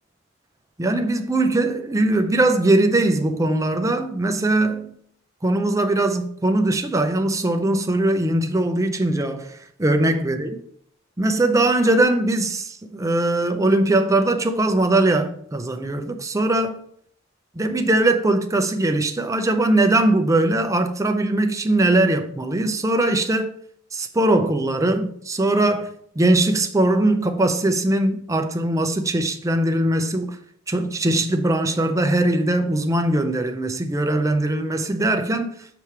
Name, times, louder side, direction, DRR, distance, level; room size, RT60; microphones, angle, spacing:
voice 1, 0.8-4.9 5.4-10.5 11.2-16.8 17.6-23.5 23.9-30.4 30.7-35.5, right 2 dB, 15° right, 0.5 m, -20 dB
6.9 x 3.2 x 5.7 m
head